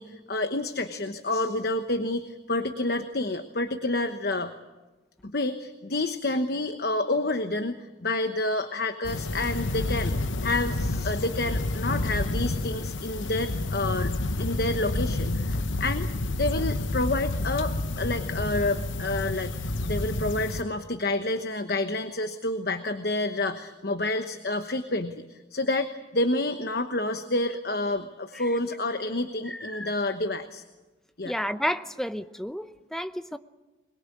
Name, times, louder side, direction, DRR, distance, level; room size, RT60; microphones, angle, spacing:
voice 1, 0.0-4.5 5.2-16.1 16.4-19.5 19.8-30.6 31.2-31.4, left 2 dB, 55° left, 1.1 m, -29 dB
sound 1, 9.0-20.6, left 2 dB, 90° left, 1.0 m, -29 dB
voice 2, 29.5-29.9 31.2-33.4, equal, ahead, 0.7 m, -31 dB
23.0 x 21.5 x 8.5 m
head